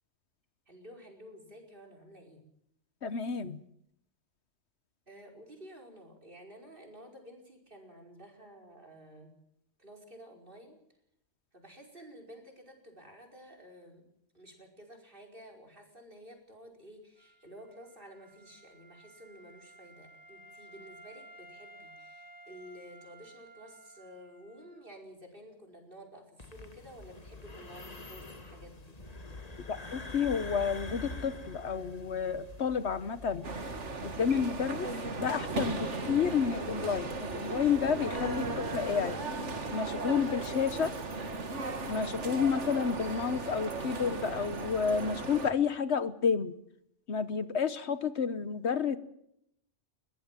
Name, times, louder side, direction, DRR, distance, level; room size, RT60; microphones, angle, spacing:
voice 1, 0.7-2.4 5.1-9.3 9.8-10.8 11.5-14.0 14.3-29.0, equal, 45° right, 3 dB, 5.2 m, -52 dB
voice 2, 3.0-3.6 29.7-33.5 34.0-34.9 35.2-39.2 39.7-40.9 41.9-46.5 47.1-49.0, left 6 dB, 65° left, 14 dB, 1.3 m, -30 dB
Wind instrument woodwind instrument, 17.2-24.9, right 2 dB, 15° left, 4.1 m, -55 dB
sound 1, 26.4-34.5, left 2 dB, 30° left, 1.9 m, -46 dB
sound 2, 33.4-45.5, right 3 dB, 70° right, 2.3 m, -36 dB
22.0 x 18.0 x 7.5 m, 0.73 s
omnidirectional pair, 1.2 m